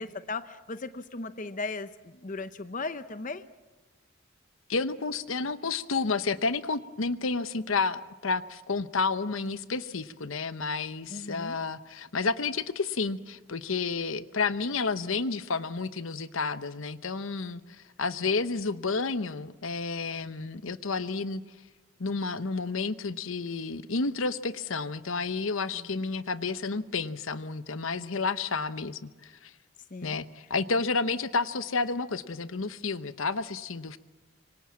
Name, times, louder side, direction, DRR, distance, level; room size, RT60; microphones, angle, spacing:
voice 1, 0.0-3.4 11.1-11.6 25.7-26.1 29.9-30.2, left 3 dB, 40° left, 12 dB, 0.8 m, -37 dB
voice 2, 4.7-21.4 22.0-29.5 30.0-34.0, left 4 dB, 70° left, 14 dB, 0.9 m, -31 dB
26.0 x 24.0 x 7.4 m, 1.2 s
head